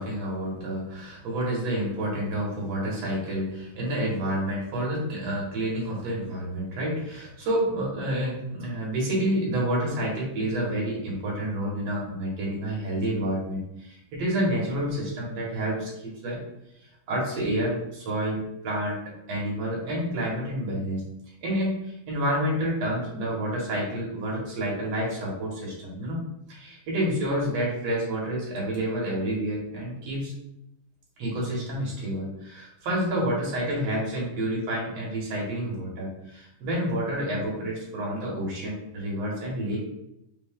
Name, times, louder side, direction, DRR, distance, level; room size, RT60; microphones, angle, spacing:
voice 1, 0.0-16.4 17.1-21.0 21.4-26.2 26.5-30.3 31.2-39.8, right 1 dB, 55° right, -4 dB, 2.1 m, -29 dB
5.4 x 2.7 x 3.6 m, 0.83 s
omnidirectional pair, 4.2 m